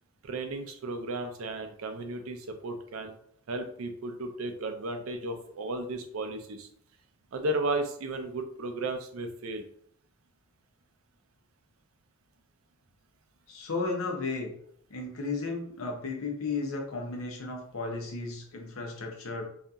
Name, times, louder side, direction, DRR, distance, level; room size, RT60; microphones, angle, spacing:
voice 1, 0.2-3.2 3.5-6.7 7.3-9.7, right 2 dB, 85° right, 6 dB, 0.4 m, -34 dB
voice 2, 13.5-14.5 14.9-19.5, left 3 dB, 90° left, 1 dB, 0.7 m, -34 dB
2.8 x 2.4 x 2.3 m, 0.65 s
head